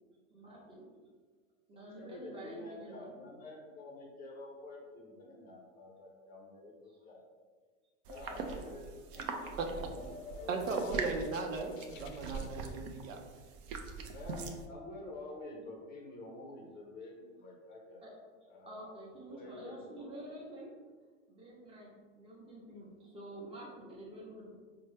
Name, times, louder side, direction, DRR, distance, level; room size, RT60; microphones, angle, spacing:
voice 1, 0.3-0.8 1.7-3.1 6.9-7.0 8.2-8.7 14.0-14.1 18.0-18.2 18.7-20.7 21.3-24.6, right 1 dB, 15° right, -3 dB, 0.7 m, -49 dB
voice 2, 1.7-6.7 7.0-7.4 8.1-10.0 10.3-11.4 14.1-18.0 18.5-18.9 19.2-20.1, left 2 dB, 25° left, -1 dB, 0.5 m, -49 dB
sound 1, 8.1-14.6, right 4 dB, 45° right, 0.4 m, -42 dB
sound 2, 9.3-12.5, left 4 dB, 80° left, 0.5 m, -49 dB
voice 3, 9.6-9.9 10.5-13.2, right 4 dB, 90° right, 3 dB, 0.6 m, -37 dB
4.3 x 2.1 x 3.2 m, 1.5 s
hypercardioid pair, 130°, 39 cm